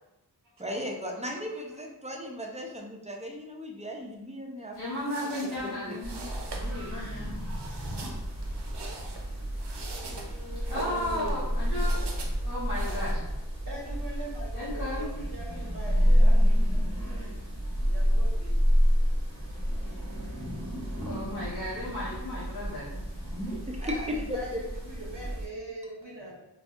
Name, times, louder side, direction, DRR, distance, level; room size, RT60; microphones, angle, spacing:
voice 1, 0.6-4.8 5.8-6.0 23.7-24.2 24.5-24.6, equal, 15° right, 0 dB, 0.5 m, -36 dB
Footsteps slippers dragging on tile, 4.7-13.1, right 3 dB, 75° right, 0.6 m, -44 dB
voice 2, 4.8-6.2 6.5-7.3 10.7-12.0 12.4-13.1 14.5-15.1 21.1-23.4, left 1 dB, 60° left, -9 dB, 1.0 m, -35 dB
sound 1, 6.0-25.4, equal, 10° left, 1.4 m, -29 dB
voice 3, 12.0-12.3 12.9-17.2 17.8-18.6 19.3-19.4 23.8-26.4, right 1 dB, 55° right, -4 dB, 0.9 m, -43 dB
4.0 x 2.5 x 2.4 m, 0.92 s
wide cardioid pair, 45°, 41 cm